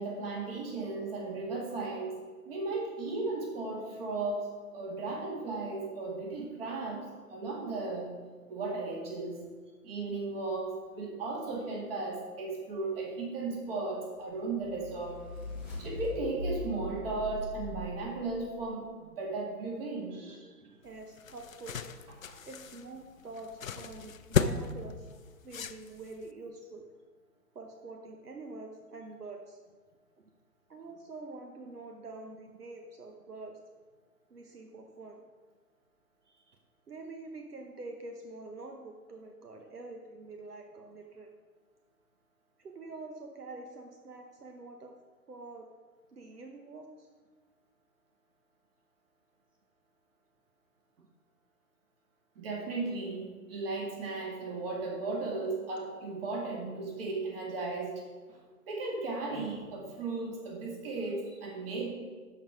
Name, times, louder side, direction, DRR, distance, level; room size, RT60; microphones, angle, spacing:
voice 1, 0.0-2.1 2.5-4.5 4.7-7.0 7.3-8.1 8.5-9.4 9.8-15.2 15.8-20.1 22.3-22.4 52.4-58.0 58.7-61.9, right 3 dB, 40° right, -1 dB, 2.4 m, -35 dB
sound 1, 14.4-18.7, left 1 dB, 5° right, 0.5 m, -40 dB
voice 2, 20.1-21.9 22.4-25.1 25.4-26.8 27.5-29.6 30.2-30.3 30.7-33.6 34.3-35.2 36.2-36.6 36.9-41.3 42.6-45.0 45.3-45.7 46.1-47.1 51.0-51.1 58.3-58.5, right 3 dB, 75° right, 4 dB, 1.0 m, -46 dB
sound 2, 20.9-26.3, left 6 dB, 60° left, 0.6 m, -35 dB
12.0 x 4.7 x 5.0 m, 1.5 s
figure-of-eight pair, 130°, 47 cm